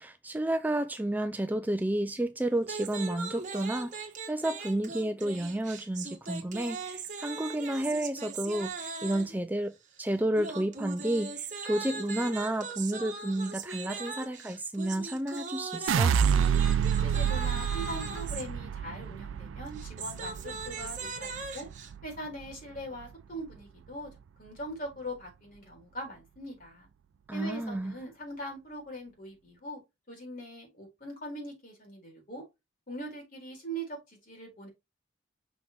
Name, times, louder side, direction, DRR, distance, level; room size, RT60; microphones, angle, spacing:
voice 1, 0.0-16.1 27.3-28.0, right 1 dB, 10° right, 0.4 m, -31 dB
sound 1, 2.6-9.4 10.4-18.4 19.7-21.9, right 4 dB, 40° right, 1.5 m, -39 dB
sound 2, 15.9-22.1 22.4-23.0, right 7 dB, 90° right, 0.4 m, -28 dB
voice 2, 17.0-21.7 22.0-24.1 24.4-26.9 27.3-29.8 30.1-32.4 32.9-34.7, equal, 45° left, 4.2 m, -41 dB
6.1 x 6.0 x 3.5 m
head